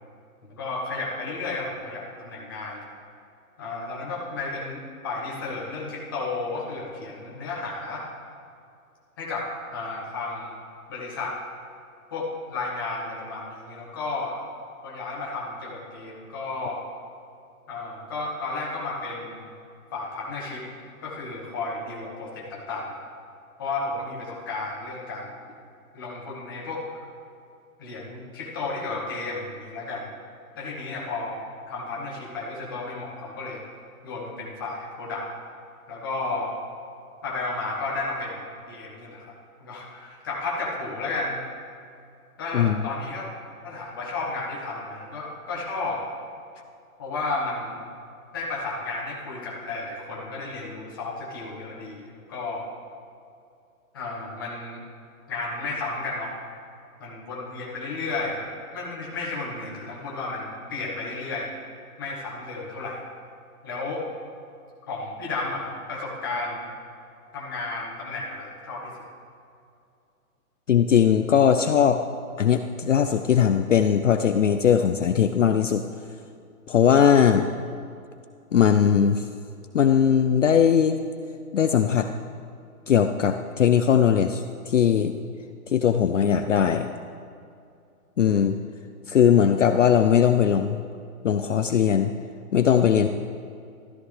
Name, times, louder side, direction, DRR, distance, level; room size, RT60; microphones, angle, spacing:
voice 1, 0.5-2.8 3.6-8.0 9.2-10.6 10.9-11.3 12.1-14.4 14.8-16.8 17.7-19.5 19.9-20.6 21.0-23.0 23.6-25.5 25.9-26.8 27.8-30.1 30.5-31.4 31.7-33.6 34.0-35.2 35.9-36.5 37.2-39.3 39.6-41.4 42.4-43.3 43.6-46.0 47.0-47.8 48.3-52.7 53.9-54.8 55.3-56.3 57.0-61.5 62.0-63.0 63.6-64.0 64.9-66.7 67.3-69.1, left 3 dB, 15° left, -4 dB, 1.1 m, -33 dB
voice 2, 42.5-42.9 70.7-72.0 72.4-75.8 76.7-77.5 78.5-79.3 79.7-81.0 81.5-82.1 82.9-85.1 85.7-86.9 88.2-88.6 89.1-90.8 91.2-92.1 92.5-93.1, left 8 dB, 55° left, 7 dB, 0.5 m, -19 dB
14.0 x 13.0 x 3.3 m, 2.5 s
hypercardioid pair, 180°, 44 cm